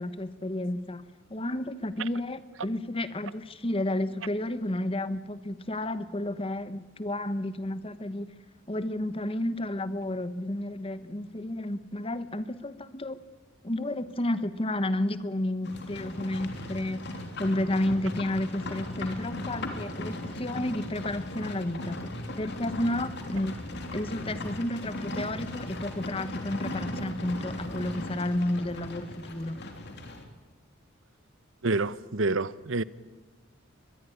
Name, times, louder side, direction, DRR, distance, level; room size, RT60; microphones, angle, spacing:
voice 1, 0.0-8.3 8.7-13.2 13.6-17.0 17.4-22.0 22.4-23.5 23.9-29.6, left 1 dB, 25° left, 1.1 m, -31 dB
Livestock farm animals working animals, 15.6-30.2, left 1 dB, 55° left, 3.4 m, -37 dB
voice 2, 31.6-32.8, right 3 dB, 70° right, 0.9 m, -27 dB
23.0 x 20.0 x 10.0 m
head